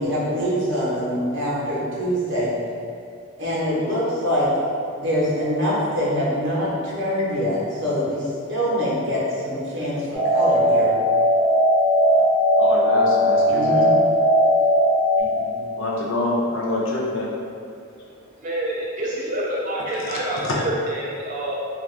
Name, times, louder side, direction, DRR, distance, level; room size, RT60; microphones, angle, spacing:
voice 1, 0.0-2.5 3.4-4.5 5.0-8.2 8.5-9.9 10.3-10.9 13.5-14.0 15.2-15.6 16.0-16.1, equal, 55° right, -7 dB, 0.8 m, -24 dB
sound 1, 10.1-15.2, equal, ahead, 0.7 m, -18 dB
voice 2, 12.6-13.8 15.7-17.3 20.0-20.6, left 2 dB, 60° left, -3 dB, 0.4 m, -26 dB
voice 3, 18.4-21.5, right 1 dB, 35° right, -5 dB, 0.3 m, -27 dB
2.5 x 2.3 x 3.1 m, 2.4 s
head